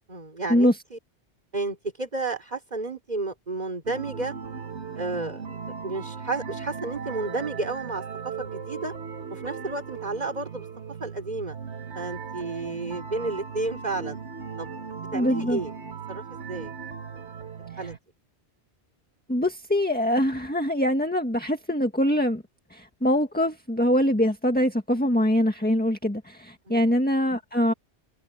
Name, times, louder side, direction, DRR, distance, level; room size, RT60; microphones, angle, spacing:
voice 1, 0.1-1.0 1.5-4.3 5.0-5.4 5.8-8.9 9.3-10.7 11.0-11.6 11.9-14.2 14.6-14.7 15.1-15.7 16.1-16.7 17.1-17.2 17.8-18.0 26.7-26.9, right 3 dB, 40° right, 3.6 m, -32 dB
sound 1, 3.9-18.0, right 6 dB, 90° right, 1.7 m, -38 dB
voice 2, 15.1-15.6 19.3-22.4 22.7-27.7, equal, 10° left, 1.7 m, -23 dB
omnidirectional pair, 1.1 m